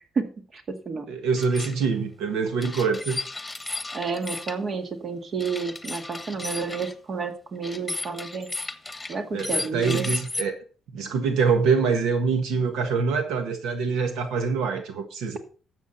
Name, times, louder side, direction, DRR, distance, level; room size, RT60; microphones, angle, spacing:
voice 1, 0.2-1.1 3.9-8.5 9.1-10.1, right 5 dB, 50° right, 6 dB, 1.9 m, -30 dB
voice 2, 1.1-3.2 9.3-10.6 10.9-15.4, right 5 dB, 90° right, 6 dB, 1.4 m, -25 dB
sound 1, 1.4-1.8 2.6-4.6 5.4-6.9 7.6-10.4, left 2 dB, 10° left, 1.4 m, -34 dB
13.0 x 7.6 x 4.2 m, 0.39 s
cardioid pair, 90°, 0 cm